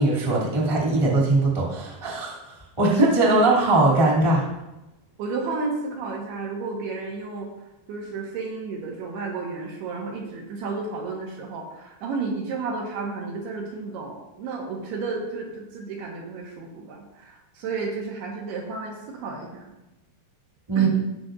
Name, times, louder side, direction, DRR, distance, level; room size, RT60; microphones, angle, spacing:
voice 1, 0.0-2.4 2.8-4.4 20.7-20.9, right 2 dB, 10° right, -4 dB, 1.5 m, -20 dB
voice 2, 5.2-7.5 7.9-19.7 20.8-20.9, right 4 dB, 70° right, -1 dB, 3.0 m, -32 dB
16.5 x 6.0 x 2.6 m, 0.96 s
omnidirectional pair, 5.2 m